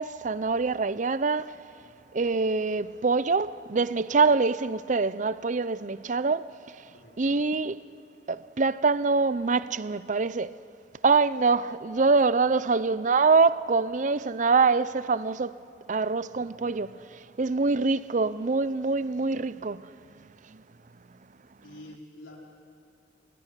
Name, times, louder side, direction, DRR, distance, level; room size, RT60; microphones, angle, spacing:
voice 1, 0.0-1.5 2.1-6.5 6.7-6.8 7.2-7.8 8.3-10.6 11.0-15.6 15.9-19.9 20.5-20.6, right 4 dB, 40° right, 0.6 m, -25 dB
voice 2, 6.9-7.4 21.6-22.4, left 1 dB, 90° left, 4.4 m, -47 dB
26.5 x 18.0 x 9.8 m
head